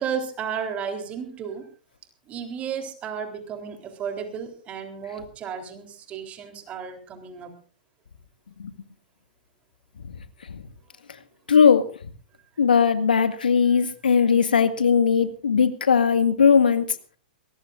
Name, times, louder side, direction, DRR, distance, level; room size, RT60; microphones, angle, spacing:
voice 1, 0.0-1.7 2.3-7.5, right 7 dB, 25° right, 6 dB, 3.7 m, -33 dB
voice 2, 11.5-11.9 12.6-16.9, left 6 dB, 80° left, 10 dB, 1.9 m, -19 dB
22.5 x 19.0 x 2.6 m, 0.40 s
hypercardioid pair, 115°, 5 cm